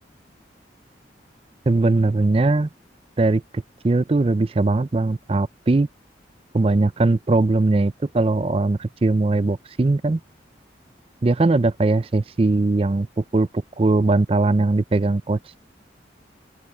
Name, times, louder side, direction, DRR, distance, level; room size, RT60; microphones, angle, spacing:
voice 1, 1.7-2.7 3.2-5.9 6.5-10.2 11.2-15.6, right 2 dB, 30° right, 0.4 m, -20 dB
head